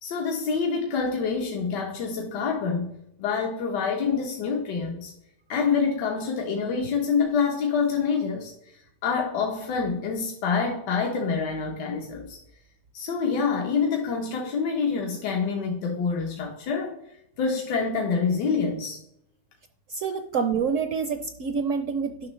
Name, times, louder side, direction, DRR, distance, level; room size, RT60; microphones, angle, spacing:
voice 1, 0.0-5.1 5.5-8.7 9.0-12.4 12.9-17.0 17.4-19.0, left 5 dB, 80° left, 1 dB, 1.6 m, -26 dB
voice 2, 19.9-22.3, right 6 dB, 65° right, 8 dB, 0.8 m, -27 dB
10.0 x 6.1 x 3.1 m, 0.78 s
omnidirectional pair, 1.8 m